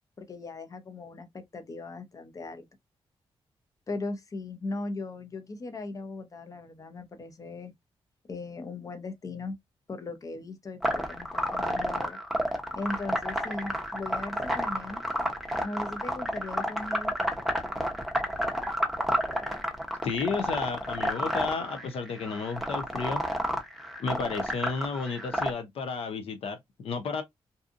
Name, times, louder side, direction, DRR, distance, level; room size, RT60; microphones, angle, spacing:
voice 1, 0.2-2.7 3.9-7.7 8.3-9.6 9.9-12.2 12.7-15.0 15.6-17.1, left 3 dB, 35° left, 0.7 m, -38 dB
sound 1, 10.8-25.5, equal, ahead, 0.7 m, -30 dB
voice 2, 20.0-23.2 24.0-27.2, left 5 dB, 75° left, 0.6 m, -32 dB
2.7 x 2.4 x 2.4 m
cardioid pair, 85°, 10 cm